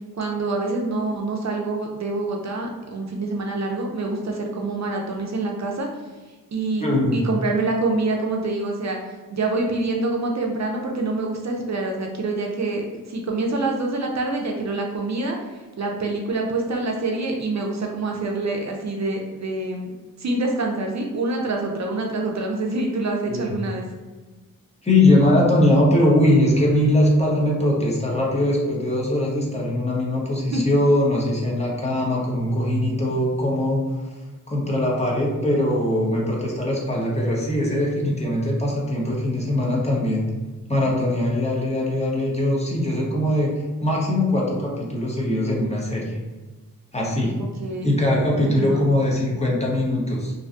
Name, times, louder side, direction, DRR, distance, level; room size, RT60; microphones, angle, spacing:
voice 1, 0.1-5.9 6.5-6.8 7.1-9.0 9.3-15.4 15.8-19.9 20.2-23.8 30.5-30.6 47.6-47.9 48.4-48.8, right 2 dB, 55° right, 1 dB, 0.4 m, -26 dB
voice 2, 6.8-7.2 23.3-23.4 24.8-33.8 34.5-40.3 40.7-43.5 43.8-46.2 46.9-47.3 47.8-50.3, left 1 dB, 20° left, -4 dB, 0.7 m, -21 dB
2.6 x 2.2 x 2.5 m, 1.2 s
cardioid pair, 50°, 34 cm